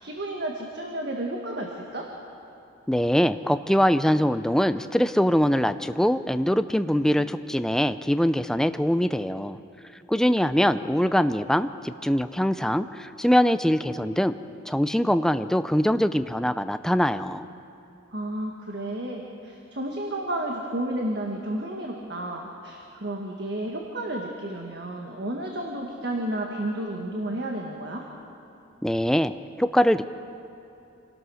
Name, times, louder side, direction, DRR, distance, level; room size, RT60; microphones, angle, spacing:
voice 1, 0.0-2.1 18.1-28.0, right 1 dB, 55° right, 0 dB, 1.7 m, -32 dB
voice 2, 2.9-9.6 10.1-14.3 14.7-17.5 28.8-29.3 29.6-30.1, equal, 5° left, 11 dB, 0.4 m, -23 dB
26.5 x 17.5 x 6.4 m, 2.8 s
head